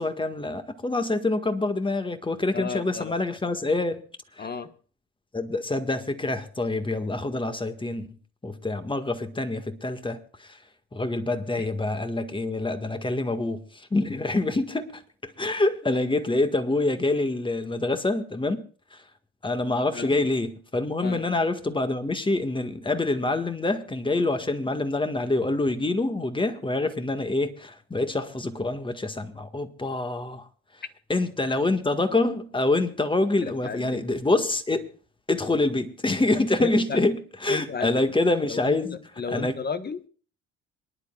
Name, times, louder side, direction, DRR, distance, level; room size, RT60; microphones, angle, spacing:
voice 1, 0.0-4.0 4.4-4.5 5.3-8.1 8.4-10.2 10.9-13.6 13.9-18.6 19.4-30.4 31.1-34.9 35.3-39.0 39.3-39.6, left 2 dB, 15° left, 1.7 m, -26 dB
voice 2, 2.5-3.1 4.4-4.7 11.6-11.7 19.9-20.1 21.0-21.3 33.4-34.0 36.6-37.0 37.5-38.0 38.4-38.7 39.2-40.0, left 5 dB, 30° left, 1.3 m, -33 dB
27.0 x 10.5 x 2.4 m
hypercardioid pair, 55°, 32 cm